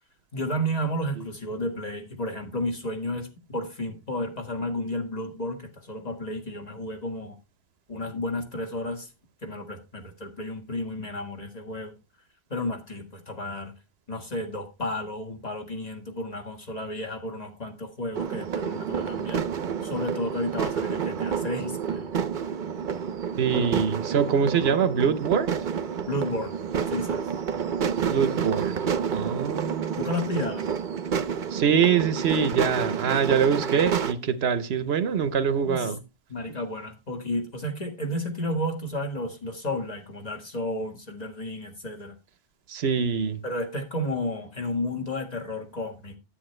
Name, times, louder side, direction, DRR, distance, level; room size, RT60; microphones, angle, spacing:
voice 1, 0.3-7.4 7.9-9.1 9.4-11.9 12.5-13.7 14.1-19.5 19.8-22.1 26.1-26.6 26.9-27.2 30.0-30.7 35.7-35.9 36.3-42.2 43.4-46.2, left 1 dB, 40° left, 1.8 m, -32 dB
sound 1, 18.1-34.1, right 7 dB, 55° right, 0.8 m, -29 dB
voice 2, 23.4-25.5 28.1-28.8 29.1-30.1 31.5-36.0 42.7-43.4, right 7 dB, 85° right, 1.1 m, -24 dB
10.0 x 8.4 x 3.2 m
omnidirectional pair, 1.0 m